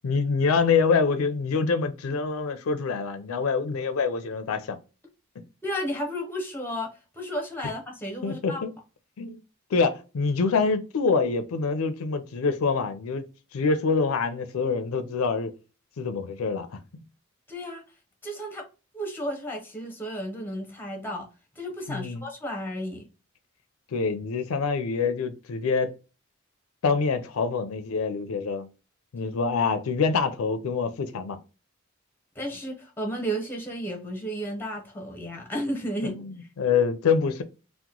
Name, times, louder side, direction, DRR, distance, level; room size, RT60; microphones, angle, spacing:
voice 1, 0.0-4.8 8.2-8.7 9.2-9.4 9.7-13.2 13.5-15.5 16.0-16.7 21.9-22.2 23.9-25.9 26.8-28.7 29.1-31.4 36.0-36.2 36.6-37.4, left 5 dB, 80° left, 0.4 m, -25 dB
voice 2, 5.6-6.9 7.2-8.6 17.5-17.8 18.2-18.7 18.9-21.3 21.6-23.1 32.4-36.2, equal, 10° left, 0.7 m, -33 dB
2.9 x 2.1 x 3.6 m
head